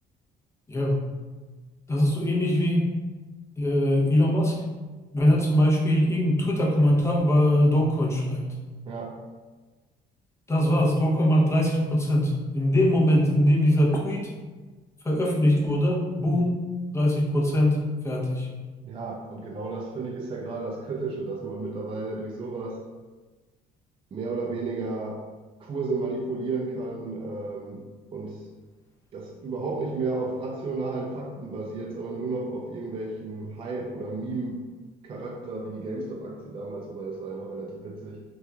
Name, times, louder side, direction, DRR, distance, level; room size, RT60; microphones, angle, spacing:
voice 1, 0.7-1.0 1.9-2.9 3.6-4.6 5.1-8.5 10.5-14.3 15.0-16.6 16.9-17.8 18.0-18.5, left 1 dB, 15° left, -4 dB, 0.7 m, -22 dB
voice 2, 8.9-9.2 18.8-22.8 24.1-25.3 25.6-28.5 29.1-34.6 35.0-38.2, right 3 dB, 30° right, -1 dB, 0.4 m, -33 dB
2.8 x 2.3 x 3.5 m, 1.3 s
cardioid pair, 110°, 17 cm